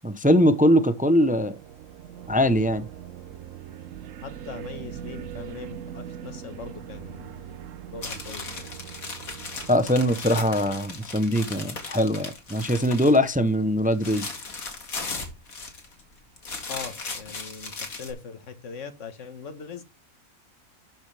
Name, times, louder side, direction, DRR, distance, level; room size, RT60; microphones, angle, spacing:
voice 1, 0.0-1.6 2.3-2.9 9.7-14.3, equal, 10° right, 0.4 m, -21 dB
sound 1, 1.2-11.4, right 10 dB, 65° right, 1.1 m, -41 dB
voice 2, 4.2-8.7 16.7-19.8, left 5 dB, 60° left, 1.6 m, -41 dB
sound 2, 8.0-13.3 13.6-16.0 16.4-18.1, left 4 dB, 75° left, 2.7 m, -37 dB
12.0 x 6.5 x 3.4 m
omnidirectional pair, 1.5 m